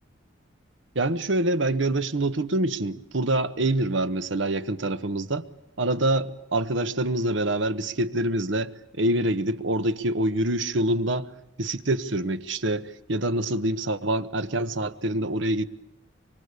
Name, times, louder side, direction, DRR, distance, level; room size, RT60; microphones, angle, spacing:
voice 1, 0.9-5.4 5.8-11.3 11.6-15.7, right 1 dB, 75° right, 1.3 m, -26 dB
24.5 x 24.5 x 8.3 m
head